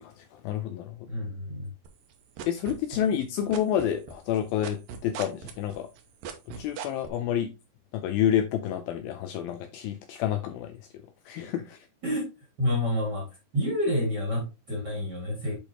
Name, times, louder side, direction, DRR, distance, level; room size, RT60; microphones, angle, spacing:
voice 1, 0.0-1.0 2.5-5.9 6.6-7.5 7.9-10.7 11.3-11.8, left 10 dB, 80° left, 2.2 m, -29 dB
voice 2, 1.1-1.7 12.0-12.3 12.6-13.3 13.5-15.6, left 1 dB, 35° right, 2.0 m, -28 dB
sound 1, 1.8-3.2 3.5-7.1, right 7 dB, 70° right, 2.4 m, -38 dB
8.4 x 5.1 x 2.9 m
omnidirectional pair, 4.7 m